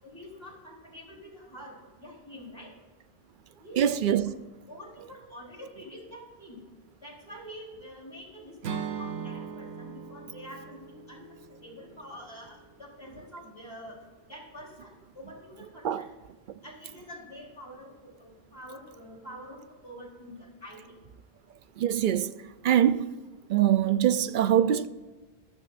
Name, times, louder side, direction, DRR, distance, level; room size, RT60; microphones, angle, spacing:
voice 1, 0.0-2.7 3.6-4.4 4.7-6.6 7.0-14.0 14.3-16.1 16.6-21.0, equal, 25° left, 3.8 m, -46 dB
voice 2, 3.8-4.3 15.8-16.0 21.8-22.3 22.6-23.1 23.5-24.9, right 10 dB, 60° right, 0.6 m, -23 dB
Acoustic guitar / Strum, 8.6-12.7, right 7 dB, 85° right, 1.0 m, -39 dB
14.5 x 12.0 x 2.5 m
omnidirectional pair, 1.1 m